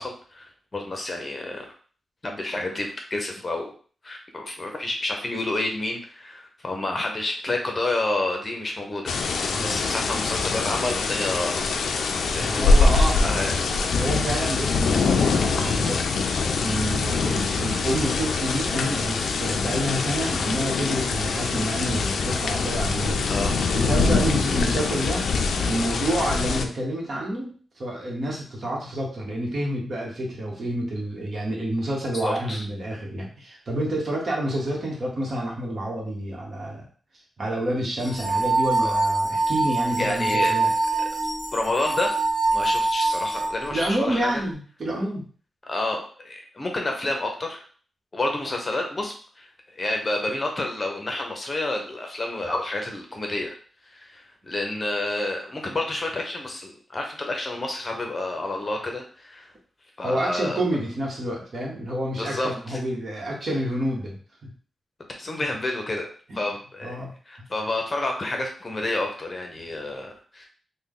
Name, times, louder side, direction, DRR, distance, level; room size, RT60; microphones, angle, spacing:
voice 1, 0.0-1.7 2.2-3.7 4.0-11.7 12.3-13.5 23.3-23.6 32.2-32.6 38.8-39.0 40.0-40.6 41.5-42.2 42.5-44.4 45.6-47.6 48.1-49.5 49.8-53.5 53.8-59.5 60.0-60.6 62.1-62.8 65.2-66.1 66.4-67.0 67.3-70.5, left 2 dB, 30° left, 2 dB, 0.7 m, -29 dB
sound 1, 9.1-26.7, left 4 dB, 85° left, 0.4 m, -24 dB
voice 2, 12.4-13.6 13.9-23.4 23.7-25.3 25.6-36.8 37.4-40.7 43.7-45.2 60.0-64.2 64.4-64.5 66.3-66.4 66.8-67.1, right 1 dB, 50° right, -1 dB, 1.1 m, -29 dB
sound 2, 38.0-43.9, right 2 dB, ahead, 0.8 m, -24 dB
3.4 x 2.1 x 3.7 m, 0.43 s
wide cardioid pair, 115°, 0 cm